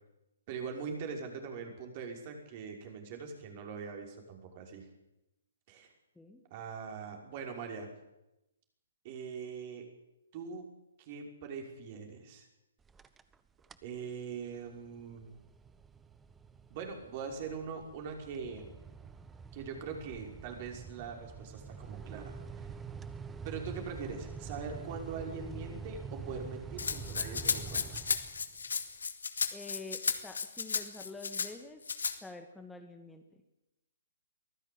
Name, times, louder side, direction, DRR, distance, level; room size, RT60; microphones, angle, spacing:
voice 1, 0.5-4.9 5.7-5.9 6.5-7.9 9.0-9.9 10.3-10.7 11.0-12.5 13.8-15.3 16.7-18.7 19.5-22.4 23.4-27.9, right 5 dB, 40° right, 3 dB, 5.7 m, -42 dB
sound 1, 12.8-13.4 13.6-14.0 14.4-28.7, right 5 dB, 10° right, 1.1 m, -46 dB
Rattle (instrument), 26.8-31.5 31.9-32.2, left 5 dB, 80° left, 2.3 m, -34 dB
voice 2, 29.5-31.8 32.2-33.2, left 3 dB, 5° left, 4 dB, 1.8 m, -47 dB
23.5 x 15.0 x 8.8 m, 0.93 s
hypercardioid pair, 135°, 0 cm